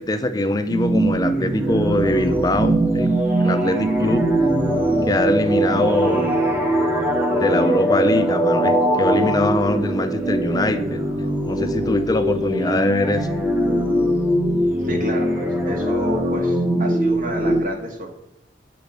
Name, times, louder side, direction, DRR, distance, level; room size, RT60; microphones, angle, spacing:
voice 1, 0.0-4.3 5.0-6.4 7.3-11.0 11.4-13.3, left 1 dB, 20° left, 10 dB, 0.4 m, -22 dB
sound 1, 0.7-17.6, right 1 dB, 10° right, 0.7 m, -21 dB
voice 2, 14.8-18.1, right 1 dB, 45° right, 1 dB, 0.8 m, -30 dB
7.5 x 3.0 x 5.1 m, 0.88 s
head